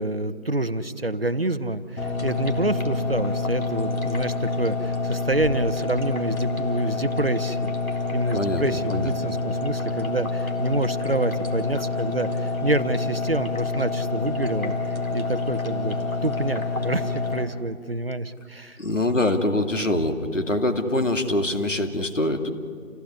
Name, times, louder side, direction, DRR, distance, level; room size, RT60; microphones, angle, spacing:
voice 1, 0.0-7.8 8.1-14.7 15.1-18.8, right 2 dB, 45° right, 13 dB, 1.0 m, -27 dB
sound 1, 2.0-17.4, left 3 dB, 80° left, 3.8 m, -27 dB
voice 2, 18.8-22.5, left 1 dB, 60° left, 5 dB, 2.5 m, -24 dB
29.5 x 16.5 x 9.8 m, 2.2 s
figure-of-eight pair, 175°, 41 cm